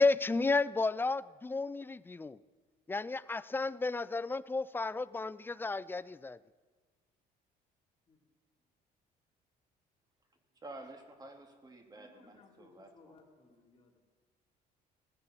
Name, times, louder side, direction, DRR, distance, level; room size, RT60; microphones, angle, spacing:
voice 1, 0.0-2.4 2.9-6.4, left 3 dB, 10° left, 17 dB, 0.3 m, -32 dB
voice 2, 10.6-13.2, right 2 dB, 25° right, 4 dB, 2.0 m, -51 dB
voice 3, 11.9-14.0, left 3 dB, 35° left, -2 dB, 3.5 m, -62 dB
17.5 x 15.5 x 4.2 m, 1.4 s
cardioid pair, 110°, 17 cm